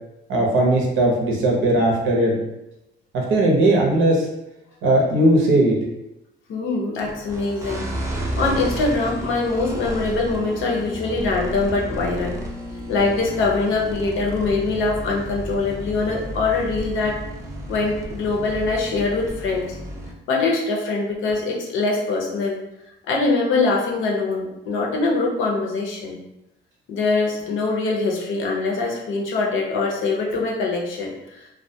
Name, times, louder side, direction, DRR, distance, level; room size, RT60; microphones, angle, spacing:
voice 1, 0.3-2.4 3.1-4.3 4.8-5.8, right 1 dB, 80° right, -1 dB, 0.7 m, -18 dB
voice 2, 6.5-7.9 8.4-12.4 12.9-17.2 17.7-19.8 20.3-22.6 23.1-26.2 26.9-31.5, left 3 dB, 80° left, -1 dB, 0.6 m, -23 dB
sound 1, 7.0-20.1, equal, 15° right, 0.5 m, -32 dB
2.3 x 2.1 x 2.7 m, 0.89 s
cardioid pair, 90°, 20 cm